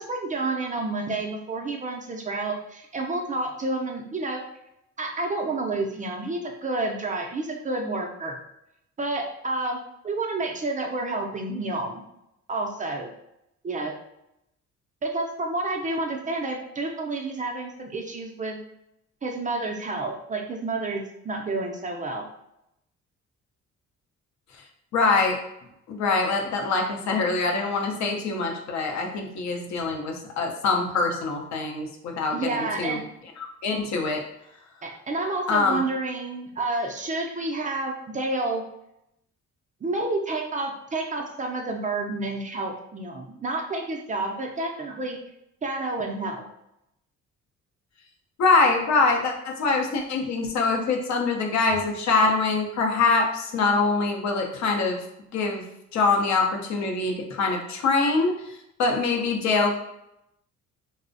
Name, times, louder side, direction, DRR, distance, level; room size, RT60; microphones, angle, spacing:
voice 1, 0.0-4.4 5.0-8.4 9.0-12.0 12.5-13.1 13.6-13.9 15.0-18.6 19.2-22.2 32.3-33.0 34.8-38.6 39.8-45.2 45.6-46.4, right 2 dB, 25° right, 1 dB, 0.3 m, -29 dB
voice 2, 24.9-25.4 25.9-32.5 32.8-33.0 33.6-34.2 35.5-35.8 48.4-55.0 55.3-55.6 55.9-58.4 58.8-59.7, left 3 dB, 65° left, 2 dB, 0.5 m, -24 dB
2.4 x 2.0 x 2.5 m, 0.82 s
cardioid pair, 90°, 30 cm